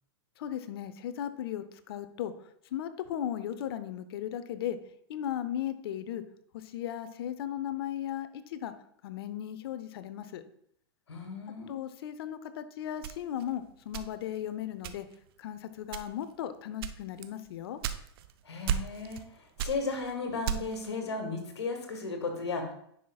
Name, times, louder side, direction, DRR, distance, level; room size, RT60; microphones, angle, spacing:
voice 1, 0.4-2.3 2.7-4.8 5.1-6.2 6.7-8.7 9.0-10.4 11.7-15.1 15.4-17.8, left 10 dB, 65° left, 12 dB, 0.7 m, -36 dB
voice 2, 11.1-11.7 18.4-19.2 19.6-22.7, left 4 dB, 90° left, 4 dB, 1.7 m, -35 dB
sound 1, 13.0-14.4 14.8-15.3 15.8-16.3 16.8-18.3 18.7-19.3 19.6-20.9, right 9 dB, 60° right, 0.6 m, -34 dB
10.0 x 5.8 x 2.4 m, 0.69 s
hypercardioid pair, 115°, 14 cm